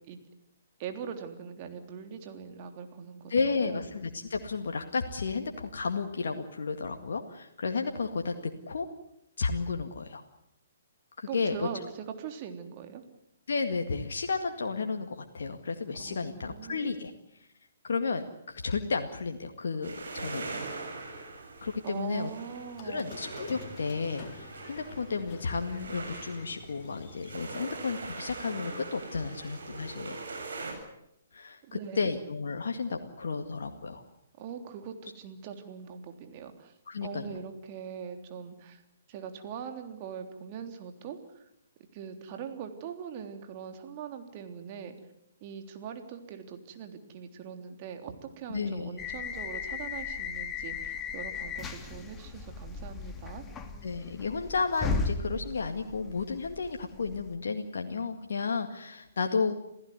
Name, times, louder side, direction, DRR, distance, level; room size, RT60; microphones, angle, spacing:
voice 1, 0.8-3.8 11.3-13.0 16.0-17.2 21.8-23.1 31.6-32.1 34.4-36.7 37.0-38.8 39.1-41.5 41.9-45.0 45.4-53.4, right 7 dB, 35° right, 6 dB, 3.4 m, -42 dB
voice 2, 3.3-8.9 9.4-10.2 11.2-11.7 13.5-17.1 17.8-20.6 21.6-22.3 22.8-30.2 31.3-34.0 36.9-37.3 48.5-49.0 53.8-59.5, left 4 dB, 60° left, 4 dB, 2.0 m, -32 dB
sound 1, 19.8-30.7, right 3 dB, 65° right, 7.9 m, -42 dB
Squeak, 22.7-28.1, left 6 dB, 35° left, 4.2 m, -49 dB
sound 2, 49.0-57.3, left 4 dB, 15° left, 2.4 m, -36 dB
28.0 x 16.0 x 9.6 m, 0.81 s
figure-of-eight pair, 125°, 0 cm